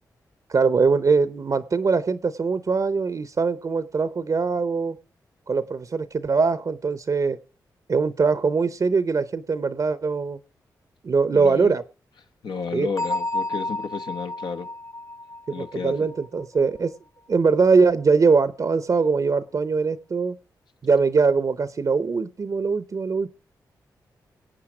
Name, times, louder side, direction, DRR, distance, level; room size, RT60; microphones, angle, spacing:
voice 1, 0.5-5.0 5.5-7.4 7.9-10.4 11.0-11.8 12.7-12.9 15.5-16.9 17.3-20.4 20.8-23.3, right 4 dB, 50° right, 0.7 m, -22 dB
voice 2, 11.3-11.7 12.4-14.7 15.5-16.1, left 5 dB, 75° left, 1.1 m, -32 dB
Bell, 13.0-16.6, left 2 dB, 45° left, 0.7 m, -31 dB
22.5 x 8.2 x 4.8 m
cardioid pair, 50°, 8 cm